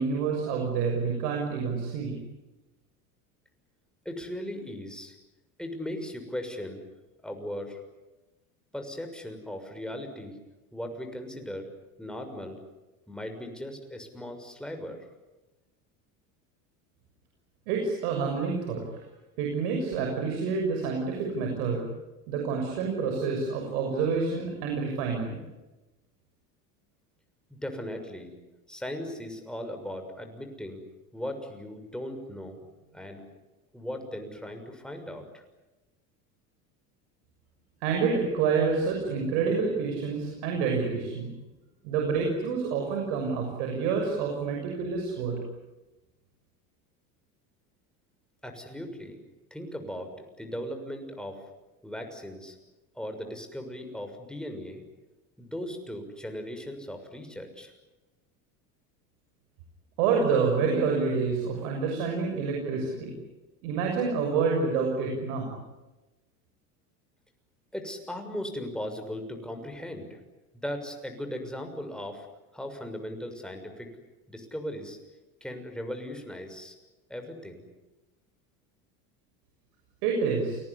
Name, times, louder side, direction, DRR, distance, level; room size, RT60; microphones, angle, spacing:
voice 1, 0.0-2.1 17.7-18.8 19.4-21.9 22.3-25.4 37.8-41.3 41.8-45.4 60.0-63.1 63.6-65.5 80.0-80.6, right 5 dB, 75° right, 1 dB, 6.7 m, -28 dB
voice 2, 4.0-5.1 5.6-6.8 7.2-7.8 8.7-10.4 10.7-11.7 12.0-12.6 13.1-15.1 27.5-28.3 28.7-30.8 31.1-33.2 33.7-35.4 48.4-49.2 49.5-51.4 51.8-52.6 52.9-54.8 55.4-57.7 67.7-70.2 70.6-72.3 72.5-73.9 74.3-75.0 75.4-76.7 77.1-77.7, equal, ahead, 5 dB, 6.5 m, -38 dB
29.0 x 20.0 x 9.9 m, 1.1 s
hypercardioid pair, 90°, 45 cm